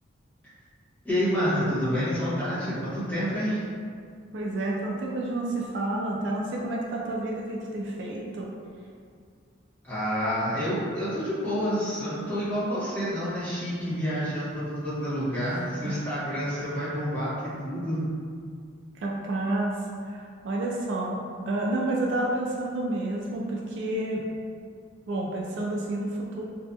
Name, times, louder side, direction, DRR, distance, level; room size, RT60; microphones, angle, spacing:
voice 1, 1.0-3.6 9.8-17.3 17.6-18.0, equal, 10° left, -14 dB, 1.1 m, -28 dB
voice 2, 4.3-8.5 15.4-15.9 18.9-19.7 20.0-24.2 25.1-26.4, right 2 dB, 60° right, -2 dB, 0.3 m, -30 dB
2.6 x 2.3 x 2.3 m, 2.2 s
head